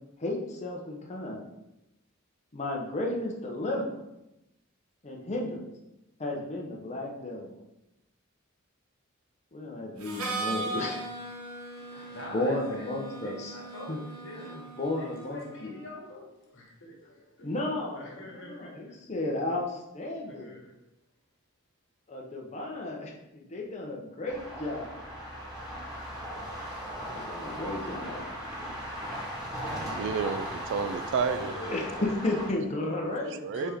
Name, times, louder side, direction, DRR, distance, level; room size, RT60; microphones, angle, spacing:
voice 1, 0.2-1.4 2.5-4.0 5.0-5.6 6.2-7.6 9.5-11.0 11.9-13.5 13.9-14.0 14.5-15.8 17.4-20.5 22.1-24.9 27.1-28.5 31.7-31.9 32.2-33.7, left 1 dB, 35° left, 0.6 m, -34 dB
Harmonica, 10.0-15.7, right 2 dB, 90° right, 0.8 m, -38 dB
voice 2, 11.8-16.2 16.5-17.5 17.9-18.9 20.2-20.8 31.4-31.9 33.3-33.7, left 1 dB, 60° left, 1.3 m, -45 dB
sound 1, 24.3-32.5, equal, 15° right, 1.4 m, -37 dB
voice 3, 29.9-31.8 33.0-33.7, right 6 dB, 60° right, 0.3 m, -31 dB
4.1 x 3.5 x 3.4 m
head